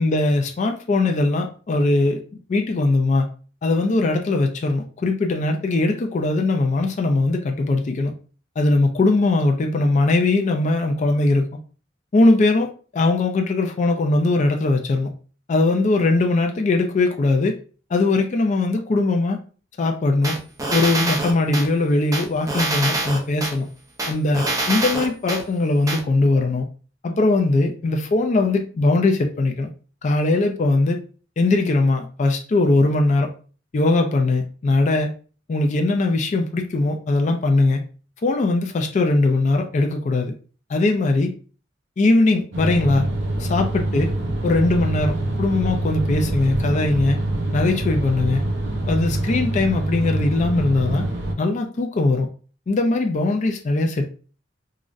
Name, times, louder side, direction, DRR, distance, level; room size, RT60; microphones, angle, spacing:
voice 1, 0.0-2.2 2.5-3.3 3.6-8.1 8.6-11.5 12.1-15.1 15.5-17.6 17.9-19.4 19.8-20.4 20.7-23.7 24.1-26.7 27.0-29.7 30.0-31.0 31.4-33.3 33.7-35.1 35.5-37.8 38.2-40.3 40.7-41.3 42.0-43.1 43.4-44.1 44.4-47.2 47.5-48.4 48.8-51.0 51.4-52.3 52.7-54.1, left 2 dB, 40° left, 4 dB, 0.3 m, -20 dB
sound 1, 20.2-21.7 22.1-23.5 24.0-25.4 25.9-26.0, right 2 dB, 20° right, 0.5 m, -25 dB
sound 2, 42.5-51.3, right 1 dB, 70° right, 0.6 m, -25 dB
3.7 x 2.0 x 2.5 m, 0.38 s
head